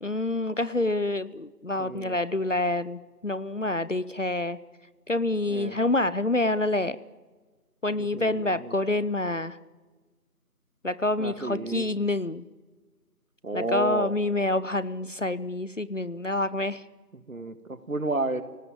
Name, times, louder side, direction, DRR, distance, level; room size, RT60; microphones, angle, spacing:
voice 1, 0.0-4.6 5.1-7.0 7.8-9.6 10.8-12.4 13.5-16.8, left 2 dB, 50° left, 17 dB, 0.7 m, -27 dB
voice 2, 1.8-2.2 5.5-5.8 8.0-8.8 11.2-11.9 13.4-14.1 17.1-18.4, right 2 dB, 55° right, 11 dB, 1.8 m, -32 dB
27.5 x 18.5 x 8.8 m, 1.3 s
figure-of-eight pair, 180°, 48 cm